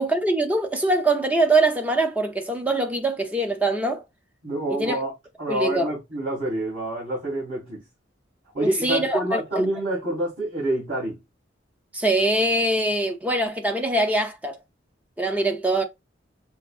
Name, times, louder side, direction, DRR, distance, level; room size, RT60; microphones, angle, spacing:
voice 1, 0.0-4.0 4.7-5.0 5.5-5.9 8.6-9.6 11.9-14.6 15.2-15.8, right 2 dB, 10° right, 0.7 m, -23 dB
voice 2, 4.4-5.1 5.4-7.8 8.5-11.2, right 1 dB, 45° right, 2.8 m, -27 dB
5.7 x 2.5 x 2.5 m
head